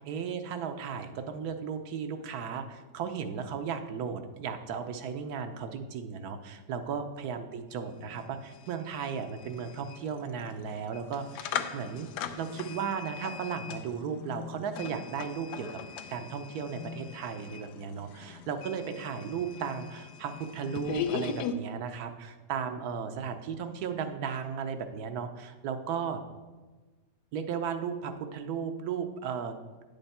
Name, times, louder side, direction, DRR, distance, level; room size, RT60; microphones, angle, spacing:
voice 1, 0.0-12.1 12.4-15.8 16.1-26.2 27.3-29.6, right 6 dB, 70° right, 8 dB, 1.1 m, -35 dB
sound 1, 7.7-7.8 8.1-21.5, left 8 dB, 85° left, 1.2 m, -40 dB
9.5 x 6.7 x 4.2 m, 1.3 s
omnidirectional pair, 1.8 m